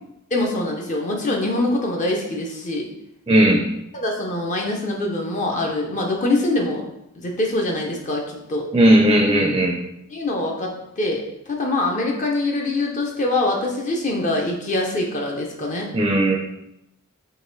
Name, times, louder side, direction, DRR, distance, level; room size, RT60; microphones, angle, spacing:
voice 1, 0.3-2.9 3.9-6.8 7.2-8.7 10.1-15.9, left 2 dB, 35° left, 0 dB, 0.6 m, -24 dB
voice 2, 3.3-3.6 8.7-9.8 15.9-16.4, right 1 dB, 20° right, 0 dB, 0.4 m, -16 dB
3.9 x 2.9 x 3.9 m, 0.84 s
head